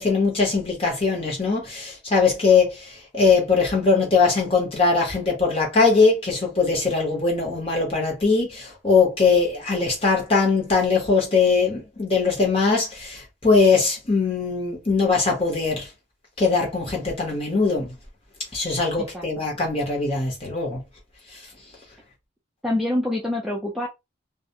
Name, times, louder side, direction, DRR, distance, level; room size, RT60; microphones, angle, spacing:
voice 1, 0.0-15.9 16.4-17.9 18.5-20.8 21.3-21.4, left 4 dB, 30° left, 1.0 m, -21 dB
voice 2, 22.6-23.9, left 1 dB, ahead, 0.4 m, -26 dB
2.4 x 2.1 x 2.8 m
head